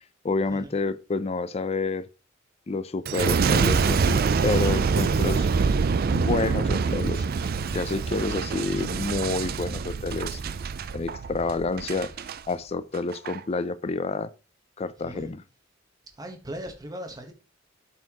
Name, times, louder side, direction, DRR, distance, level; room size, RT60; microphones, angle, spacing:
voice 1, 0.2-2.1 2.7-5.5 6.1-7.3 7.7-10.4 10.9-12.1 12.5-14.3 14.8-15.4, left 3 dB, 30° left, 0.4 m, -29 dB
Boom, 3.1-12.4 12.9-13.4, right 5 dB, 50° right, 0.4 m, -25 dB
voice 2, 15.0-15.3 16.2-17.3, right 1 dB, 20° right, 1.2 m, -38 dB
12.5 x 4.3 x 2.9 m
head